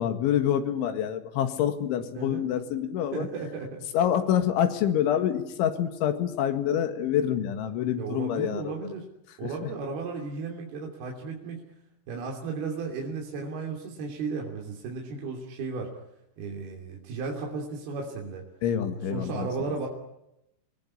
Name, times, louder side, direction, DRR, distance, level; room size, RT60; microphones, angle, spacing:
voice 1, 0.0-3.3 3.9-8.8 9.4-9.7 18.6-19.5, left 10 dB, 85° left, 8 dB, 4.2 m, -26 dB
voice 2, 2.1-2.5 3.1-3.8 8.0-9.1 9.4-11.6 12.1-15.9 16.4-18.5 19.1-19.9, right 4 dB, 60° right, 0 dB, 4.8 m, -34 dB
28.0 x 20.5 x 10.0 m, 0.85 s
omnidirectional pair, 5.3 m